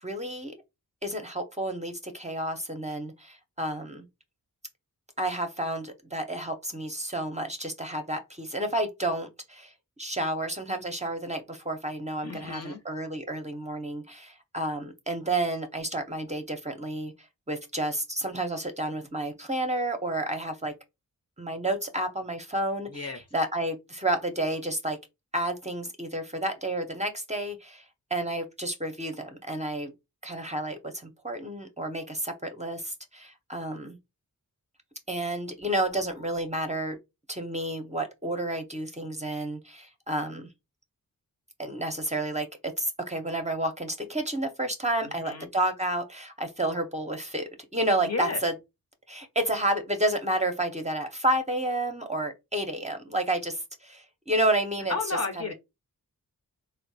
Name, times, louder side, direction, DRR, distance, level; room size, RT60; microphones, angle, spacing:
voice 1, 0.0-0.5 1.0-4.0 5.2-9.7 10.0-17.1 17.5-20.7 21.4-25.0 25.3-27.8 28.1-29.9 30.2-34.0 35.1-37.0 37.3-40.5 41.6-48.5 49.1-54.9, right 1 dB, 20° right, 0.6 m, -30 dB
voice 2, 12.2-12.8 22.9-23.2 45.2-45.5 48.0-48.4 54.9-55.5, left 3 dB, 45° left, 0.8 m, -32 dB
3.8 x 2.1 x 2.7 m
wide cardioid pair, 80°, 36 cm